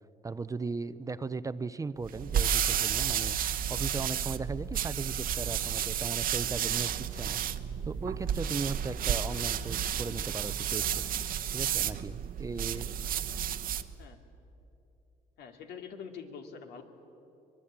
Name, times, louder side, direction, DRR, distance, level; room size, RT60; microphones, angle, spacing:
voice 1, 0.2-7.4 7.8-11.2 11.5-12.9 13.3-13.5, right 4 dB, 20° right, 14 dB, 0.6 m, -37 dB
sound 1, 2.0-13.9, right 9 dB, 55° right, 1.0 m, -31 dB
voice 2, 15.4-16.8, left 6 dB, 75° left, 5 dB, 2.6 m, -45 dB
24.0 x 21.5 x 8.8 m, 2.9 s
cardioid pair, 110°, 17 cm